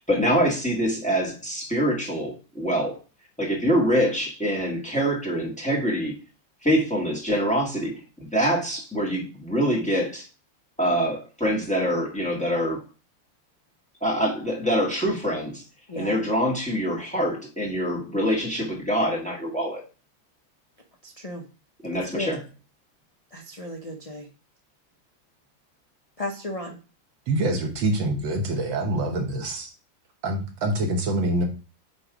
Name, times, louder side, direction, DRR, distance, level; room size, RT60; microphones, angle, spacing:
voice 1, 0.0-3.0 3.4-6.2 6.6-10.3 10.8-12.8 14.0-15.6 15.9-19.8 21.8-22.4, equal, 5° left, -1 dB, 1.5 m, -25 dB
voice 2, 15.9-16.2 21.0-21.4 22.1-22.3 23.3-24.3 26.2-26.8, left 1 dB, 40° left, 1 dB, 0.5 m, -34 dB
voice 3, 27.3-29.7 30.2-31.4, right 2 dB, 80° right, 4 dB, 1.9 m, -25 dB
8.4 x 3.1 x 5.0 m, 0.34 s
omnidirectional pair, 2.0 m